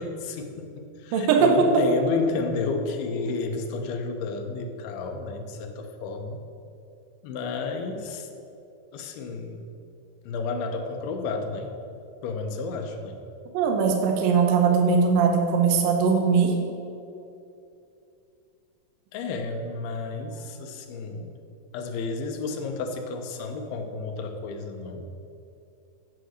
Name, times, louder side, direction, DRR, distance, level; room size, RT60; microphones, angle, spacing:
voice 1, 0.0-6.4 7.2-8.3 8.9-9.6 10.3-11.7 12.2-13.2 19.1-21.3 21.7-25.1, left 3 dB, 80° left, 5 dB, 2.7 m, -31 dB
voice 2, 1.1-1.8 13.5-16.5, right 5 dB, 75° right, 2 dB, 2.4 m, -20 dB
9.0 x 4.8 x 6.5 m, 2.6 s
omnidirectional pair, 4.5 m